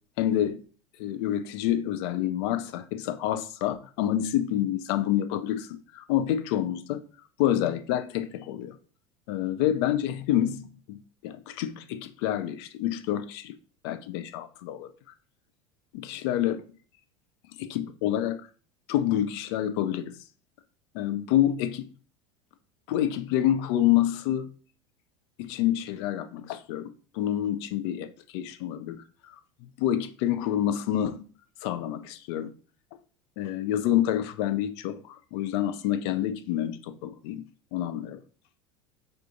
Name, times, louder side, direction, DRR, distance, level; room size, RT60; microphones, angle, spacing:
voice 1, 0.2-0.6 1.0-7.0 7.4-8.8 9.3-13.5 13.8-14.9 15.9-16.7 17.6-18.4 18.9-20.2 20.9-21.9 22.9-24.5 25.4-29.0 29.8-31.3 31.6-32.5 33.4-37.4 37.7-38.2, left 11 dB, 55° left, 0.4 m, -28 dB
3.6 x 2.4 x 2.6 m
figure-of-eight pair, 75°, 16 cm